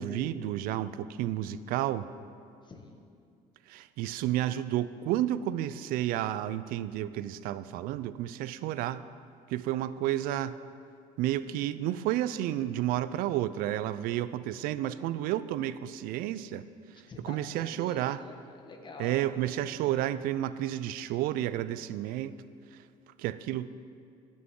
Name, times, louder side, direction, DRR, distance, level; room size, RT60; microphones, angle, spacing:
voice 1, 0.0-2.1 3.7-9.0 9.5-10.6 11.2-16.6 17.2-18.2 19.0-22.4 22.7-22.8 23.2-23.7, right 13 dB, 80° right, 15 dB, 0.4 m, -31 dB
voice 2, 2.6-3.0 16.9-20.2, left 3 dB, 30° left, 3 dB, 1.3 m, -47 dB
15.0 x 6.2 x 3.7 m, 2.3 s
cardioid pair, 100°, 15 cm